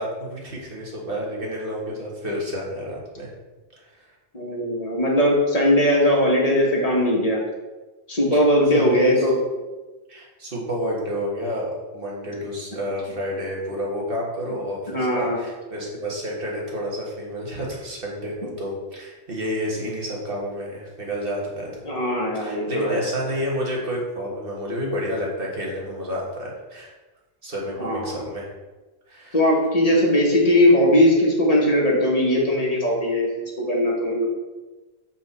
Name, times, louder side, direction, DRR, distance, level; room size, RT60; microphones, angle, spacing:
voice 1, 0.0-3.3 3.8-4.1 8.3-8.4 8.7-9.3 10.1-21.9 22.3-26.9 27.4-28.5 29.1-29.4, equal, 55° right, -3 dB, 1.7 m, -30 dB
voice 2, 4.3-7.4 8.1-9.3 14.9-15.4 21.8-23.0 27.8-28.2 29.3-33.3 33.6-34.3, left 1 dB, 35° left, -3 dB, 1.6 m, -19 dB
7.4 x 4.3 x 4.2 m, 1.2 s
omnidirectional pair, 1.2 m